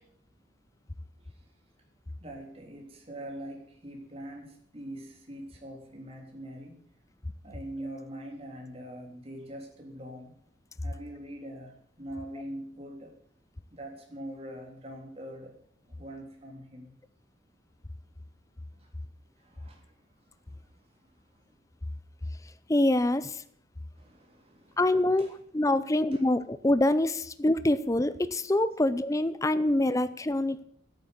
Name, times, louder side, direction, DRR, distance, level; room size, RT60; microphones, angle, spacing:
voice 1, 2.2-6.8 7.4-10.3 10.8-13.1 13.7-15.6 15.8-17.0 18.7-18.9 19.4-19.9 20.2-21.4 23.9-25.4 26.1-26.2, right 1 dB, 35° right, 1 dB, 3.3 m, -43 dB
voice 2, 22.7-23.4 24.8-30.6, left 1 dB, 20° left, 14 dB, 0.5 m, -25 dB
11.5 x 9.1 x 8.0 m, 0.65 s
head